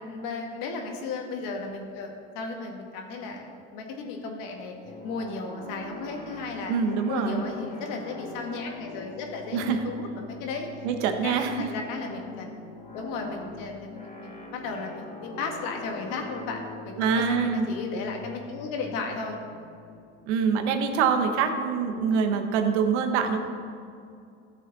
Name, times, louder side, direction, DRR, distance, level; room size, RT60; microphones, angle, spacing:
voice 1, 0.1-4.7 5.0-6.7 7.1-12.5 12.9-19.4, left 4 dB, 65° left, 2 dB, 1.9 m, -35 dB
sound 1, 4.8-21.4, left 3 dB, 20° left, 2.1 m, -44 dB
voice 2, 6.7-7.4 9.5-9.8 10.8-11.7 17.0-17.7 20.3-23.4, right 6 dB, 75° right, 6 dB, 1.2 m, -25 dB
13.5 x 7.3 x 4.1 m, 2.4 s
supercardioid pair, 95°, 35 cm